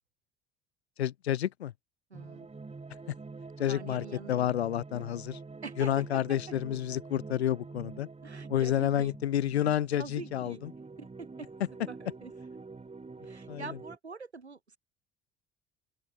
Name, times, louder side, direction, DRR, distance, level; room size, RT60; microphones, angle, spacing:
voice 1, 1.0-1.7 3.6-5.4 5.8-8.1 8.5-10.7 13.5-13.6, left 11 dB, 75° left, 1.4 m, -30 dB
sound 1, 2.1-14.0, right 3 dB, 20° right, 7.3 m, -46 dB
voice 2, 2.1-2.5 3.7-4.4 5.6-6.5 8.2-9.1 10.0-10.6 11.0-11.5 11.9-12.3 13.2-14.8, right 4 dB, 85° right, 3.0 m, -44 dB
open air
figure-of-eight pair, 60°, 32 cm